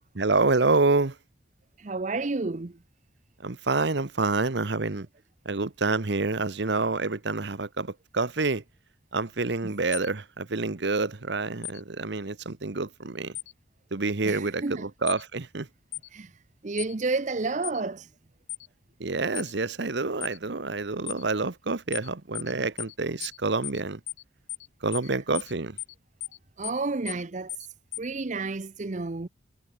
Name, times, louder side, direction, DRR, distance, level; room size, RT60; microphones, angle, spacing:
voice 1, 0.1-1.1 3.4-5.1 5.4-8.6 9.1-13.3 13.9-15.7 19.0-24.0 24.8-25.8, right 3 dB, 60° right, 1.0 m, -27 dB
voice 2, 1.8-2.7 9.6-9.7 14.2-14.9 16.1-16.3 16.6-18.1 22.6-22.7 26.6-27.5 28.0-29.3, right 3 dB, 40° right, 0.6 m, -30 dB
sound 1, 9.9-10.1 11.6-11.8 13.3-13.5 15.1-15.2 15.9-16.1 16.8-16.9 17.6-17.8 18.5-18.7 19.3-19.5 20.2-20.4 21.1-21.2 21.9-22.1 22.3-22.5 22.8-22.9 23.2-23.4 23.6-23.8 24.1-24.2 24.5-24.7 24.9-25.1 25.3-25.5 25.8-25.9 26.2-26.4 26.6-26.8 27.1-27.2 27.5-27.7 27.9-28.1, left 18 dB, 75° left, 3.3 m, -36 dB
head